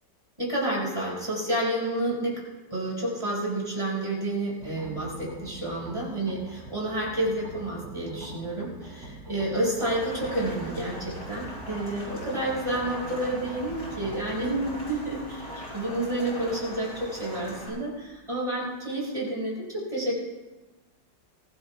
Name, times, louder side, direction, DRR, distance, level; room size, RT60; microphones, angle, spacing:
voice 1, 0.4-2.4 2.7-20.2, right 1 dB, 15° right, -4 dB, 5.9 m, -30 dB
sound 1, 4.6-18.5, right 2 dB, 65° right, 4.6 m, -45 dB
Rain, 9.8-17.7, left 1 dB, 65° left, 5.2 m, -41 dB
23.5 x 16.0 x 2.5 m, 1.1 s
omnidirectional pair, 2.0 m